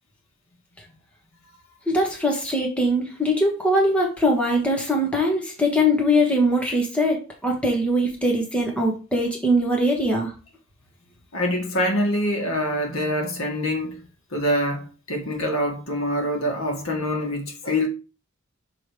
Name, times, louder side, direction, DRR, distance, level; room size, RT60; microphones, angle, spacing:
voice 1, 1.9-10.3, equal, 5° left, 1.1 m, -22 dB
voice 2, 11.3-14.0 14.3-17.9, left 1 dB, 70° left, 1.6 m, -25 dB
6.2 x 3.4 x 4.7 m
head